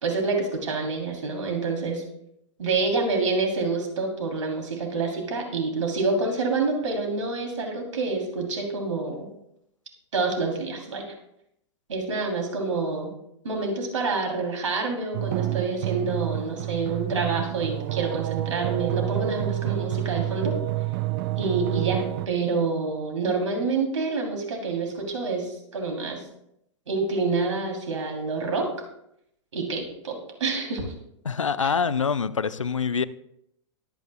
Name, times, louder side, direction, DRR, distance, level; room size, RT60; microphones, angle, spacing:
voice 1, 0.0-2.0 2.6-9.3 10.1-11.0 11.9-13.1 13.4-20.5 21.3-26.2 26.9-28.7 29.5-30.9 31.6-31.7, right 3 dB, 75° right, 1 dB, 3.1 m, -27 dB
sound 1, 15.1-22.3, right 16 dB, 50° right, 0.6 m, -28 dB
voice 2, 31.2-33.0, left 6 dB, 90° left, 17 dB, 0.6 m, -25 dB
22.5 x 9.2 x 2.3 m, 0.76 s
hypercardioid pair, 105°, 16 cm